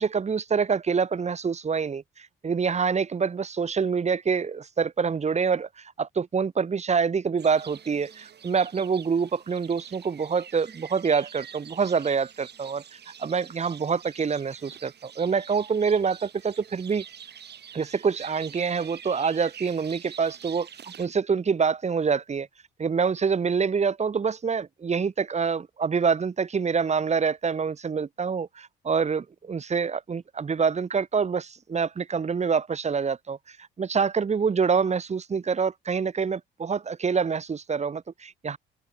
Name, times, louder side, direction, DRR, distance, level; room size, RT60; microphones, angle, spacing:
voice 1, 0.0-17.0 17.7-20.7 21.0-22.5 22.8-38.6, right 5 dB, 35° right, 1.3 m, -26 dB
sound 1, 7.4-21.1, right 8 dB, 55° right, 4.8 m, -46 dB
cardioid pair, 90°, 20 cm